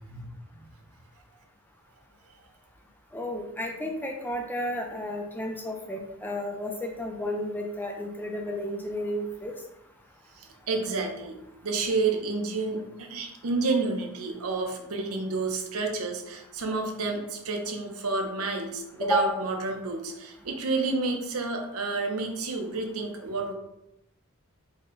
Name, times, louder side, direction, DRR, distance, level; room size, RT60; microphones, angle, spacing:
voice 1, 3.1-9.5 19.0-19.3, equal, 10° left, 1 dB, 0.4 m, -31 dB
voice 2, 10.4-11.4 11.6-23.5, right 3 dB, 90° right, 3 dB, 0.7 m, -30 dB
4.1 x 2.1 x 3.7 m, 0.86 s
head